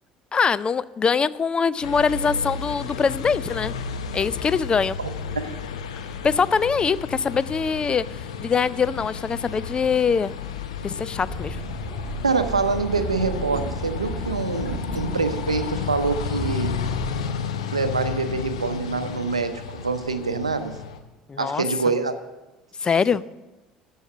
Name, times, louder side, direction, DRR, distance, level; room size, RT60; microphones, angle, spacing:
voice 1, 0.3-3.7 4.1-5.0 6.2-10.3 10.8-11.6 21.3-21.6 22.8-23.2, left 5 dB, 30° left, 18 dB, 0.4 m, -23 dB
sound 1, 1.8-21.0, left 7 dB, 75° left, 0.7 m, -32 dB
voice 2, 5.0-5.6 12.2-16.7 17.7-20.8 21.4-22.1, right 4 dB, 90° right, 10 dB, 0.6 m, -25 dB
Train, 11.2-17.3, right 4 dB, 10° right, 2.6 m, -34 dB
13.5 x 5.6 x 7.4 m, 1.1 s
figure-of-eight pair, 60°, 3 cm